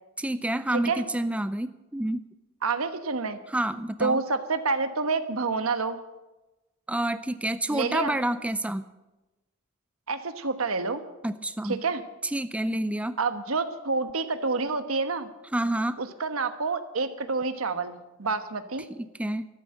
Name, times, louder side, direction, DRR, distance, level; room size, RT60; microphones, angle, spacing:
voice 1, 0.2-2.3 3.5-4.2 6.9-8.8 11.2-11.8 12.2-13.2 15.5-16.0 18.9-19.4, right 1 dB, 5° right, 12 dB, 0.4 m, -28 dB
voice 2, 2.6-3.4 4.0-6.0 7.7-8.2 10.1-11.0 11.6-12.0 13.2-15.3 16.0-18.9, right 4 dB, 85° right, 9 dB, 1.2 m, -28 dB
13.0 x 12.5 x 7.7 m, 1.1 s
head